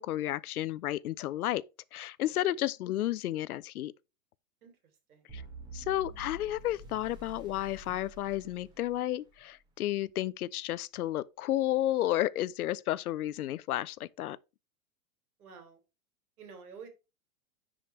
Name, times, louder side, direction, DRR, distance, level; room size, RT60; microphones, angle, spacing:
voice 1, 0.0-1.6 1.9-3.9 5.3-5.4 5.7-14.4, left 14 dB, 80° left, 0.7 m, -32 dB
voice 2, 2.3-2.7 4.6-4.7 5.1-5.4 15.4-15.8 16.4-16.9, right 6 dB, 80° right, 3.5 m, -50 dB
sound 1, 5.3-9.4, right 2 dB, 10° right, 1.0 m, -48 dB
10.0 x 5.1 x 3.2 m
hypercardioid pair, 165°, 43 cm